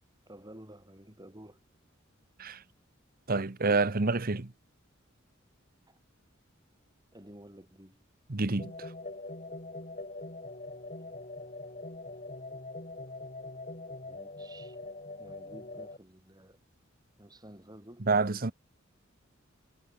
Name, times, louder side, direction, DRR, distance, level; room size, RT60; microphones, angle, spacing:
voice 1, 0.3-1.6 5.9-6.0 7.1-8.1 11.0-11.2 14.0-14.8 15.2-16.6 17.2-18.5, right 1 dB, 20° right, 6.3 m, -52 dB
voice 2, 3.3-4.5 8.3-8.9 18.1-18.5, right 3 dB, 45° right, 1.1 m, -28 dB
sound 1, 8.6-16.0, left 2 dB, 35° left, 6.5 m, -43 dB
head